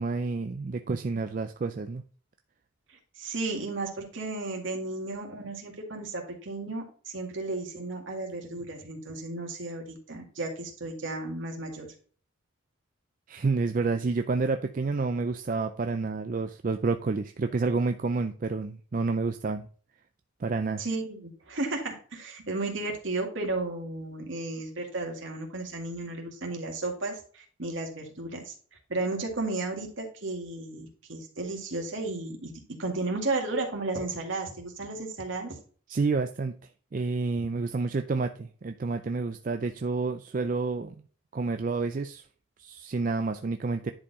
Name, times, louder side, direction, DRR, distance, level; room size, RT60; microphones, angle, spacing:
voice 1, 0.0-2.0 13.3-19.7 20.4-20.8 35.9-36.5 36.9-41.0 41.3-42.3 42.6-43.9, right 4 dB, 40° right, 8 dB, 0.4 m, -29 dB
voice 2, 2.9-11.9 20.8-28.5 28.9-35.6, right 2 dB, 65° right, 1 dB, 2.2 m, -34 dB
10.5 x 4.4 x 4.2 m, 0.42 s
head